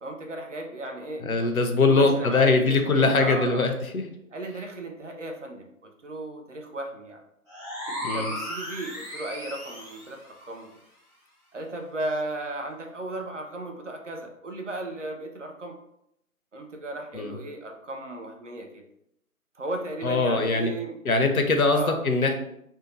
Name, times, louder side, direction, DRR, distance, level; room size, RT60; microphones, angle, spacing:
voice 1, 0.0-3.7 4.3-7.2 7.9-10.7 11.5-15.8 16.5-18.8 19.6-21.0 21.7-22.0, right 1 dB, 55° right, 3 dB, 0.5 m, -35 dB
voice 2, 1.3-4.0 8.0-8.3 17.1-17.3 20.0-20.7 21.0-22.3, left 3 dB, 65° left, 6 dB, 0.6 m, -22 dB
sound 1, 7.5-10.2, left 1 dB, 20° right, 0.8 m, -35 dB
2.6 x 2.1 x 3.0 m, 0.77 s
figure-of-eight pair, 150°, 46 cm